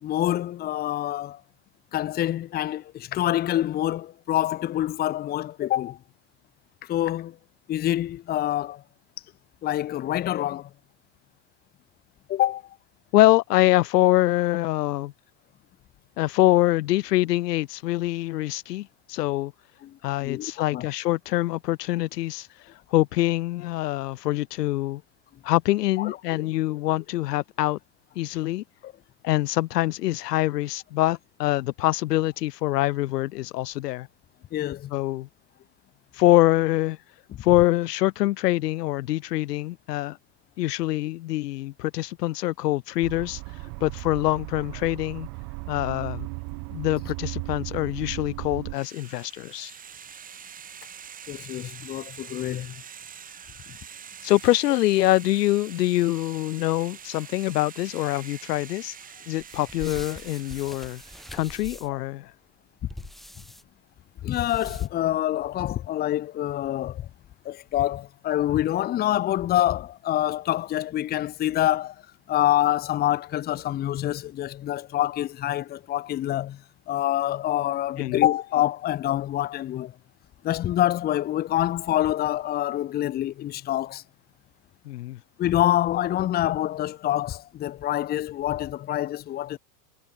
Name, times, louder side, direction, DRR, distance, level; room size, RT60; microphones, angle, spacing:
voice 1, 0.0-1.4 1.9-6.0 6.8-7.4 7.7-8.8 9.6-10.7 12.3-12.8 19.8-20.9 26.0-26.5 28.8-28.9 34.5-35.0 51.3-52.7 64.2-67.1 67.4-71.9 72.3-76.6 76.9-79.9 80.4-84.0 85.4-89.6, left 13 dB, 20° left, 1.4 m, -26 dB
voice 2, 13.1-15.1 16.2-19.5 20.0-22.5 22.9-25.0 25.4-27.8 28.2-28.6 29.2-34.1 34.9-35.3 36.1-37.0 37.4-40.2 40.6-43.4 43.8-45.3 45.7-46.3 46.7-49.7 54.2-58.9 59.3-61.0 61.3-62.3 78.0-78.2 84.9-85.2, left 16 dB, 75° left, 2.4 m, -24 dB
sound 1, 43.0-48.8, right 40 dB or more, 40° right, 4.9 m, -36 dB
sound 2, 48.7-61.8, right 8 dB, 15° right, 7.1 m, -45 dB
sound 3, 59.4-62.0 62.9-63.6 64.3-65.1, equal, ahead, 2.5 m, -43 dB
supercardioid pair, 175°, 48 cm